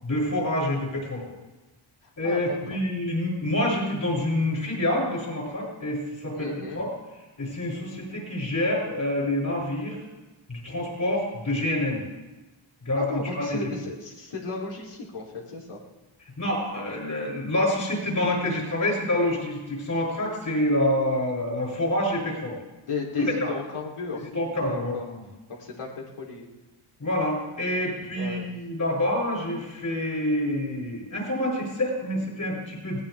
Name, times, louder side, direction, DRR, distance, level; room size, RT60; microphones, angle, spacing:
voice 1, 0.0-1.2 2.2-6.9 7.4-10.0 10.5-12.0 12.8-13.6 16.4-22.5 23.2-23.5 24.3-25.2 27.0-33.0, left 1 dB, 40° left, -2 dB, 7.4 m, -27 dB
voice 2, 2.0-2.8 6.4-6.8 12.9-15.8 22.9-24.2 24.6-25.1 25.5-25.9 26.2-26.5 28.1-28.5, left 4 dB, 90° left, -2 dB, 3.5 m, -35 dB
21.5 x 18.5 x 3.6 m, 1.1 s
wide cardioid pair, 150°, 49 cm